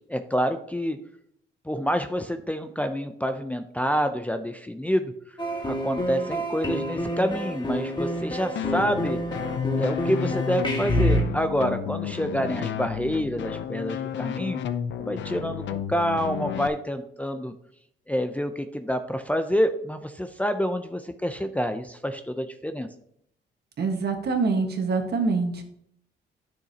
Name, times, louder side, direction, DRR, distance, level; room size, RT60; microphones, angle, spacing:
voice 1, 0.1-1.0 1.6-5.1 5.7-9.2 9.7-14.6 15.0-17.5 18.1-22.9, equal, 5° left, 6 dB, 0.6 m, -27 dB
sound 1, 5.4-11.2, equal, 25° left, 1.8 m, -28 dB
sound 2, 8.5-16.7, left 8 dB, 65° left, 0.6 m, -31 dB
voice 2, 23.8-25.6, right 4 dB, 55° right, 4 dB, 1.5 m, -25 dB
9.9 x 6.5 x 2.9 m, 0.69 s
cardioid pair, 90°, 20 cm